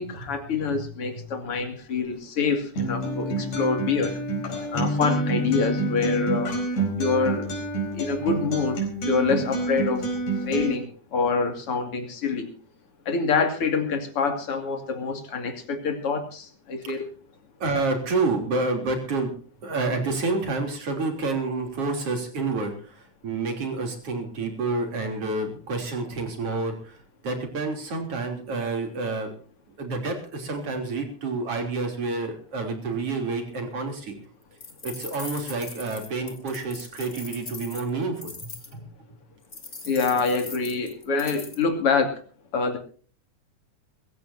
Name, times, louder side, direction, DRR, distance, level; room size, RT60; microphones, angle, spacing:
voice 1, 0.0-4.2 4.7-6.5 7.0-7.5 7.9-8.8 9.0-10.1 10.5-12.5 13.1-17.0 39.8-42.2 42.5-42.8, left 4 dB, 50° left, 5 dB, 3.3 m, -26 dB
Acoustic guitar, 2.8-10.7, right 2 dB, 65° left, 6.0 m, -28 dB
voice 2, 17.6-19.3 19.6-27.0 27.2-29.3 29.8-34.1 34.8-38.8, right 3 dB, 50° right, 4 dB, 4.2 m, -29 dB
sound 1, 34.6-38.7 39.5-41.6, left 3 dB, 25° left, 1.9 m, -40 dB
23.0 x 15.5 x 2.8 m, 0.41 s
omnidirectional pair, 3.5 m